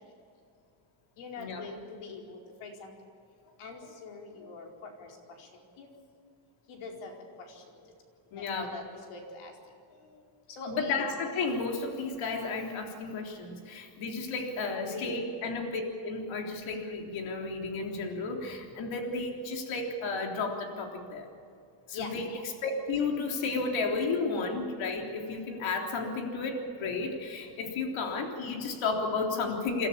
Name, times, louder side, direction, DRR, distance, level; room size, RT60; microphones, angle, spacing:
voice 1, 1.2-2.9 3.6-5.9 6.7-7.1 7.5-7.6 8.3-9.5 10.1-10.2 10.5-11.1 14.8-15.3 21.9-22.1, left 3 dB, 90° left, 1 dB, 4.8 m, -43 dB
voice 2, 8.3-8.7 10.7-21.3 21.9-22.3 22.6-29.9, left 4 dB, 70° left, 2 dB, 3.7 m, -33 dB
29.0 x 13.5 x 8.7 m, 2.5 s
cardioid pair, 170°, 48 cm